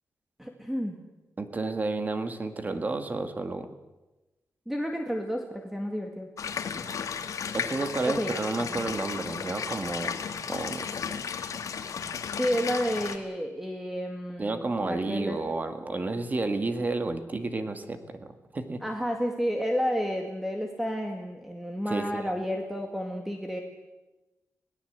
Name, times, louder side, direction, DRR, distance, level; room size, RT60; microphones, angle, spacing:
voice 1, 0.4-1.0 4.7-6.3 8.1-8.4 12.4-15.4 18.8-23.6, equal, 5° right, 3 dB, 2.0 m, -31 dB
voice 2, 1.4-3.7 7.5-10.2 10.5-11.2 14.4-18.8 21.9-22.3, right 3 dB, 30° right, 8 dB, 1.9 m, -31 dB
sound 1, 6.4-13.2, left 6 dB, 65° left, 1.9 m, -34 dB
25.0 x 17.5 x 8.1 m, 1.1 s
wide cardioid pair, 145°, 6 cm